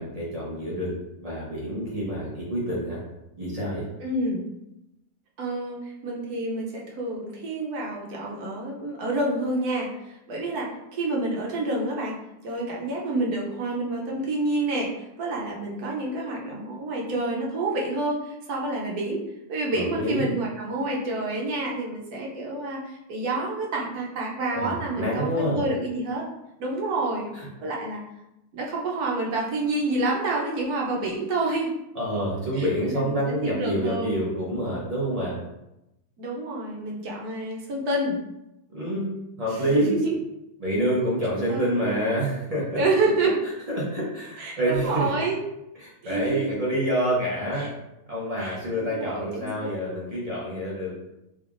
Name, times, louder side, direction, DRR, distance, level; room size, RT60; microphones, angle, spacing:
voice 1, 0.0-3.0 3.4-3.9 19.7-20.3 24.5-25.6 27.3-27.5 31.9-35.4 38.7-39.9 40.6-42.8 43.7-45.1 45.8-47.7 48.1-50.9, equal, 25° right, -6 dB, 1.0 m, -27 dB
voice 2, 4.0-4.4 5.4-12.2 12.4-14.9 15.2-19.2 19.5-26.2 26.6-27.3 27.6-28.0 28.5-31.7 32.5-34.2 36.2-38.2 39.4-40.1 41.5-42.1 42.8-43.3 44.4-45.4 46.0-46.5 47.6-47.7 48.4-49.7, right 2 dB, 75° right, -2 dB, 1.2 m, -28 dB
3.7 x 3.3 x 2.5 m, 0.89 s
omnidirectional pair, 1.7 m